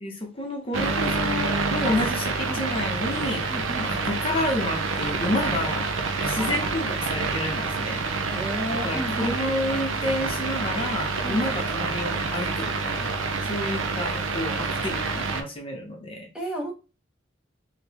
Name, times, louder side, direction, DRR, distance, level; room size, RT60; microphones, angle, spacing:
voice 1, 0.0-3.5 3.8-5.9 6.2-8.0 8.7-13.2 13.5-16.3, left 1 dB, 30° left, 1 dB, 0.7 m, -30 dB
sound 1, 0.7-15.4, right 4 dB, 85° right, 0.6 m, -27 dB
voice 2, 3.5-3.9 6.3-6.6 8.3-9.4 11.2-11.4 16.3-16.7, equal, 5° right, 0 dB, 0.7 m, -32 dB
3.6 x 2.8 x 2.9 m, 0.32 s
head